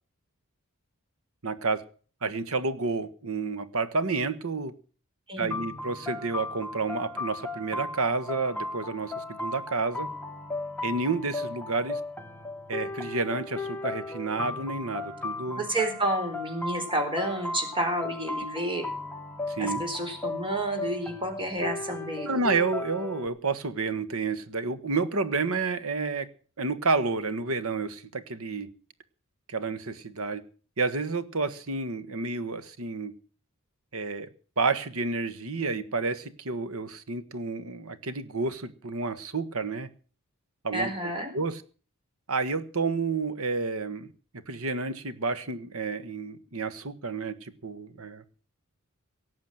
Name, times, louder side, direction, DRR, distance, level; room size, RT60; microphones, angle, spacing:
voice 1, 1.4-1.8 2.2-4.7 5.4-10.1 10.8-12.0 12.7-15.7 19.5-19.8 22.3-26.3 26.6-28.7 29.5-30.4 30.8-33.1 33.9-39.9 40.6-41.6 42.3-44.1 44.5-48.2, right 4 dB, 70° right, 13 dB, 1.5 m, -30 dB
voice 2, 5.3-5.6 15.6-18.8 19.6-22.4 40.7-41.3, right 1 dB, 25° right, 5 dB, 4.4 m, -30 dB
sound 1, 5.5-23.3, left 3 dB, 10° left, 1.4 m, -36 dB
18.0 x 7.4 x 7.7 m, 0.40 s
head